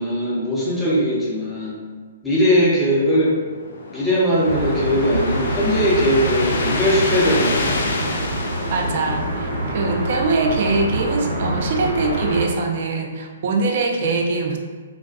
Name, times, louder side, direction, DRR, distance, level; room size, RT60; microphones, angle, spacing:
voice 1, 0.0-1.8 2.2-3.3 3.9-7.9, equal, 5° left, -8 dB, 0.7 m, -19 dB
sound 1, 3.2-9.7, left 3 dB, 70° left, 0.4 m, -28 dB
sound 2, 4.4-12.4, right 1 dB, 75° right, 0.9 m, -26 dB
voice 2, 8.7-14.6, right 3 dB, 55° right, 2 dB, 0.4 m, -22 dB
2.3 x 2.3 x 2.5 m, 1.5 s
hypercardioid pair, 140°, 0 cm